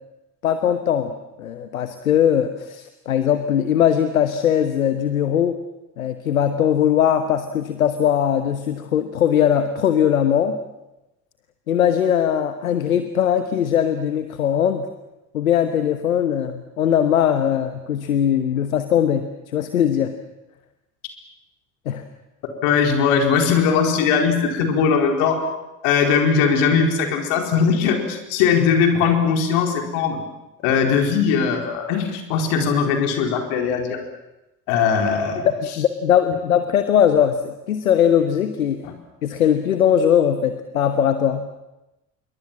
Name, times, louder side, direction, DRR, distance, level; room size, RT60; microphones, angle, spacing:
voice 1, 0.4-1.1 1.4-5.6 6.0-10.6 11.7-14.9 15.3-20.1 21.9-22.0 35.6-38.8 39.2-41.5, left 9 dB, 85° left, 9 dB, 1.2 m, -20 dB
voice 2, 22.6-25.4 25.8-30.2 30.6-34.0 34.7-35.5 38.8-38.9, left 6 dB, 70° left, 4 dB, 4.5 m, -19 dB
27.0 x 23.0 x 7.4 m, 0.94 s
hypercardioid pair, 60°, 40 cm